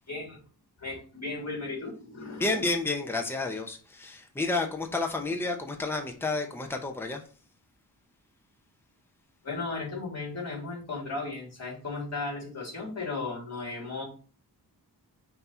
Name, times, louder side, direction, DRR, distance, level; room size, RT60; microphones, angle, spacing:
voice 1, 0.1-0.4 0.8-2.6 9.4-14.0, left 3 dB, 40° left, 3.1 m, -35 dB
voice 2, 2.4-7.2, left 3 dB, 5° left, 0.8 m, -30 dB
5.9 x 2.9 x 5.6 m
wide cardioid pair, 115°, 39 cm